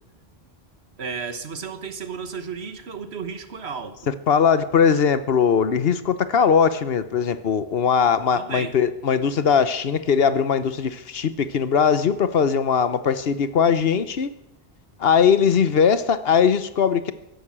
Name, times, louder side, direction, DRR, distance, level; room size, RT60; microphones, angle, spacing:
voice 1, 1.0-4.1 8.3-8.7, right 5 dB, 85° right, 1.5 m, -33 dB
voice 2, 4.1-14.3 15.0-17.1, left 6 dB, 70° left, 1.1 m, -20 dB
15.0 x 11.5 x 7.4 m
omnidirectional pair, 1.0 m